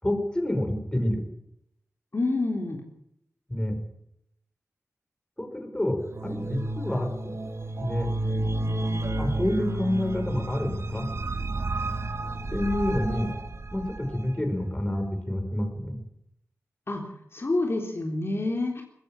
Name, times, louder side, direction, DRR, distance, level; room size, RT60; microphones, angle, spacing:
voice 1, 0.0-1.2 3.5-3.8 5.4-7.1 7.8-8.1 9.2-11.1 12.5-13.3 13.7-16.0, left 1 dB, 15° left, 4 dB, 5.0 m, -28 dB
voice 2, 2.1-2.8 16.9-17.1 17.3-18.8, left 2 dB, 45° left, 1 dB, 3.7 m, -27 dB
sound 1, 6.0-14.3, right 2 dB, 55° right, 1.9 m, -31 dB
20.0 x 15.0 x 9.0 m, 0.77 s
wide cardioid pair, 75°, 6 cm